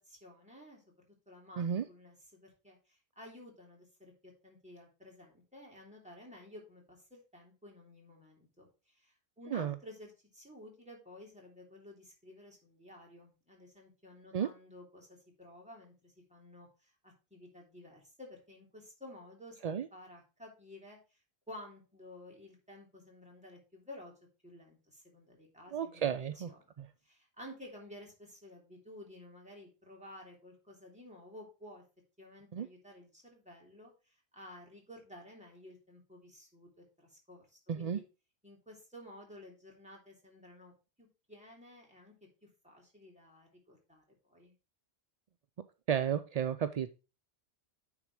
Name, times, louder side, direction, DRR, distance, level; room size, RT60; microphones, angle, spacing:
voice 1, 0.0-21.2 21.5-24.1 24.4-26.6 27.0-31.8 32.2-38.0 38.4-40.7 41.0-42.1 42.4-44.5, left 1 dB, 5° right, -1 dB, 2.8 m, -53 dB
voice 2, 25.7-26.5 26.8-26.9 32.5-32.7 37.7-38.0 45.9-46.9, right 8 dB, 60° right, 10 dB, 0.4 m, -32 dB
9.7 x 4.0 x 4.7 m, 0.31 s
omnidirectional pair, 1.1 m